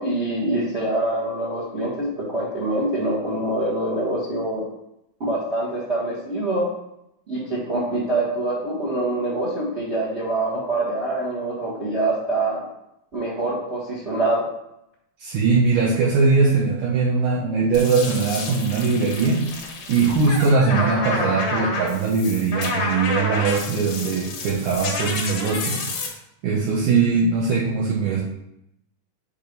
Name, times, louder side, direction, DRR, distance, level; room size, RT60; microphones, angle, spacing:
voice 1, 0.0-4.6 5.2-6.6 7.3-12.6 13.1-14.5, right 2 dB, 50° right, -5 dB, 0.8 m, -25 dB
voice 2, 15.2-19.4 19.9-26.1 26.4-28.2, right 4 dB, 70° right, -5 dB, 2.1 m, -21 dB
sound 1, 17.7-26.1, left 3 dB, 60° left, 2.0 m, -29 dB
7.2 x 3.5 x 5.3 m, 0.82 s
omnidirectional pair, 4.4 m